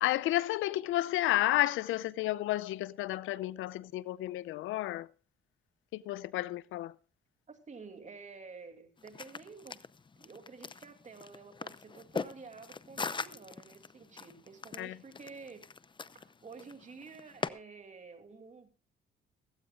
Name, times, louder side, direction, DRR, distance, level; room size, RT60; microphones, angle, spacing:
voice 1, 0.0-5.1 5.9-6.9 14.8-15.0, left 15 dB, 90° left, 0.6 m, -31 dB
voice 2, 7.5-9.8 10.2-15.7 16.1-18.7, right 4 dB, 35° right, 2.7 m, -50 dB
sound 1, 9.0-17.5, left 4 dB, 25° left, 0.6 m, -42 dB
16.5 x 16.0 x 2.4 m
cardioid pair, 90°, 20 cm